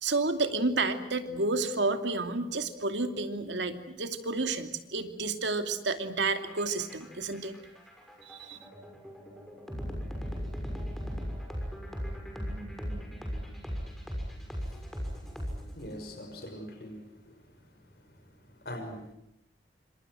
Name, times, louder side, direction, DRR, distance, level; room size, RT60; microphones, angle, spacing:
voice 1, 0.0-7.6 8.2-8.6, right 3 dB, 90° right, 7 dB, 2.7 m, -30 dB
sound 1, 6.4-16.0, equal, ahead, 6.3 m, -37 dB
voice 2, 15.7-17.0 17.3-17.4 18.6-19.1, equal, 60° left, 6 dB, 5.9 m, -42 dB
28.0 x 26.0 x 7.8 m, 0.80 s
head